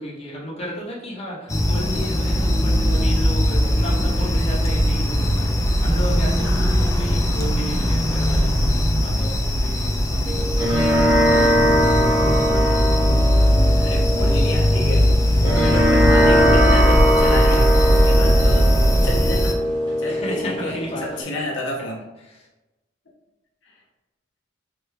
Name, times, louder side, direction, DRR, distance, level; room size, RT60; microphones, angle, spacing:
voice 1, 0.0-11.0 11.2-12.9 20.1-21.4 22.2-22.4, equal, 35° left, -3 dB, 0.8 m, -34 dB
sound 1, 1.5-19.5, equal, 15° left, 0.3 m, -19 dB
voice 2, 6.4-7.0 13.8-15.1 15.4-18.7 19.0-19.6 20.0-22.0 23.6-23.8, left 1 dB, 90° left, -1 dB, 0.6 m, -31 dB
sound 2, 10.3-21.2, equal, 25° right, 0.7 m, -21 dB
3.3 x 2.2 x 3.1 m, 1.0 s
head